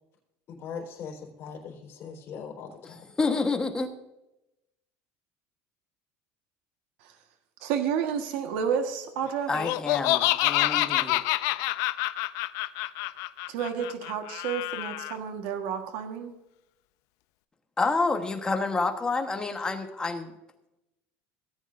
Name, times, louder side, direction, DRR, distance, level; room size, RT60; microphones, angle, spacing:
voice 1, 0.5-3.0, left 6 dB, 40° left, -2 dB, 3.9 m, -40 dB
voice 2, 3.1-3.9 9.5-11.2 17.8-20.3, left 3 dB, 15° left, 5 dB, 1.2 m, -28 dB
voice 3, 7.6-9.5 13.5-16.3, right 7 dB, 85° right, 5 dB, 1.4 m, -30 dB
Laughter, 9.5-15.1, left 17 dB, 70° left, 0.5 m, -27 dB
17.5 x 9.2 x 2.6 m, 0.91 s
cardioid pair, 145°, 6 cm